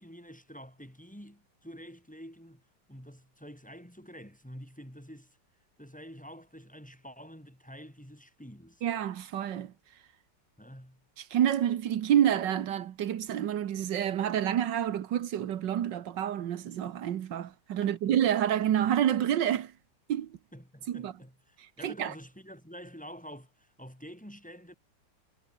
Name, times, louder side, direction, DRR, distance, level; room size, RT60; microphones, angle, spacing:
voice 1, 0.0-2.6 2.9-5.4 5.8-8.9 10.6-11.0 17.8-18.1 20.5-24.7, equal, 5° left, 6.0 m, -48 dB
voice 2, 8.8-9.7 11.3-19.7 20.1-20.3 20.9-21.1 21.8-22.1, right 10 dB, 85° right, 1.7 m, -28 dB
omnidirectional pair, 1.9 m